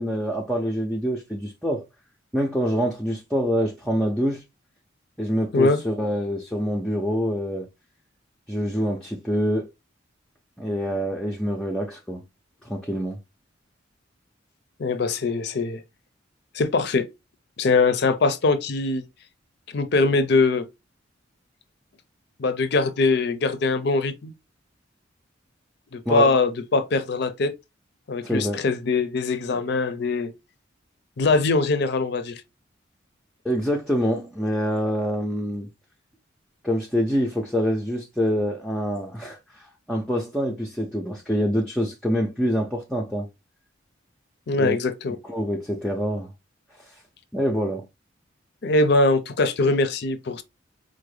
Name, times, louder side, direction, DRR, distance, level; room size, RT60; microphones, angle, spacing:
voice 1, 0.0-1.8 2.3-4.4 5.2-7.7 8.5-9.7 10.6-12.2 12.6-13.2 26.1-26.4 28.2-28.6 33.4-35.7 36.6-43.3 44.6-44.8 45.2-46.3 46.8-47.0 47.3-47.8, equal, 5° left, 0.4 m, -26 dB
voice 2, 14.8-15.8 16.5-17.1 17.6-19.0 19.7-20.7 22.4-24.3 25.9-27.5 28.1-30.3 31.2-32.4 44.5-45.2 48.6-50.4, left 3 dB, 55° left, 0.5 m, -22 dB
4.6 x 2.1 x 3.1 m
head